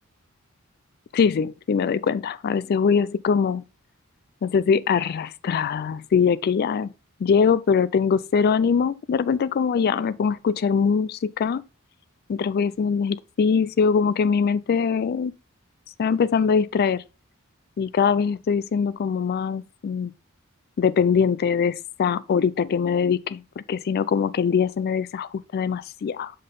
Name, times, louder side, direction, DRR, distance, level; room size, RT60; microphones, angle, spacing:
voice 1, 1.1-3.6 4.4-6.9 7.2-11.6 12.3-15.3 16.0-17.0 17.8-20.1 20.8-26.3, left 6 dB, 45° left, 0.3 m, -22 dB
5.7 x 5.4 x 3.8 m
head